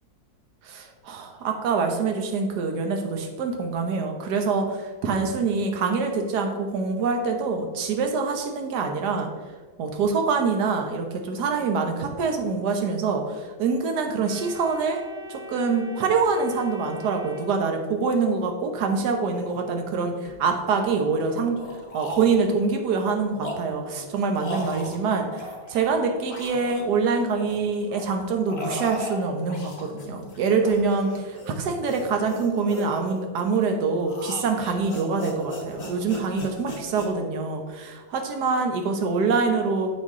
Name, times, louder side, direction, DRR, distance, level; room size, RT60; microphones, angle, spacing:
voice 1, 0.6-9.3 9.8-15.0 15.3-21.6 21.9-39.9, right 4 dB, 60° right, 4 dB, 1.4 m, -25 dB
Organ, 14.2-18.2, left 2 dB, 85° right, 2.7 m, -42 dB
sound 1, 19.0-19.1 19.3-19.6 20.2-21.0 21.5-22.6 23.1-26.0 26.2-27.6 27.9-37.1, left 1 dB, 25° left, 0.9 m, -38 dB
7.5 x 6.4 x 3.6 m, 1.5 s
omnidirectional pair, 2.1 m